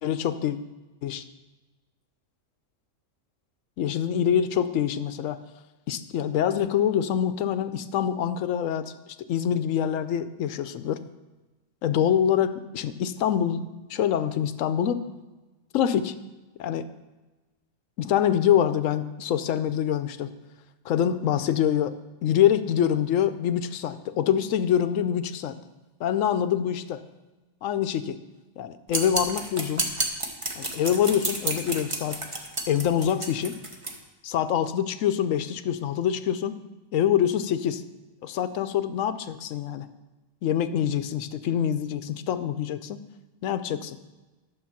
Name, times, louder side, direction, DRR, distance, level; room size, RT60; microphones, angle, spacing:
voice 1, 0.0-0.6 1.0-1.2 3.8-5.4 5.9-8.9 9.3-11.0 11.8-13.6 13.9-15.0 15.7-16.2 16.6-16.9 18.0-20.3 20.8-21.9 22.2-25.6 26.0-27.0 27.6-28.2 28.6-29.9 30.6-32.2 32.7-33.6 34.2-36.6 36.9-37.8 38.2-39.9 40.4-43.1 43.4-44.0, left 9 dB, 75° left, 12 dB, 1.0 m, -25 dB
sound 1, 28.9-33.9, right 2 dB, 25° right, 1.0 m, -30 dB
11.0 x 6.9 x 5.8 m, 1.2 s
omnidirectional pair, 1.4 m